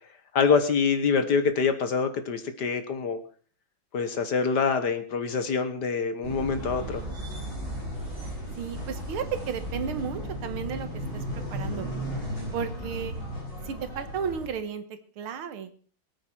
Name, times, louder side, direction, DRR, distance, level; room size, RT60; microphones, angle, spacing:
voice 1, 0.3-3.2 3.9-7.0, left 5 dB, 55° left, 10 dB, 1.7 m, -25 dB
sound 1, 6.2-14.5, equal, 25° right, 7.0 m, -35 dB
voice 2, 8.6-10.9 11.1-11.2 11.5-11.9 12.5-13.2 13.7-14.8 15.2-15.7, right 7 dB, 75° right, 10 dB, 2.1 m, -33 dB
22.5 x 8.6 x 4.5 m, 0.42 s
omnidirectional pair, 2.3 m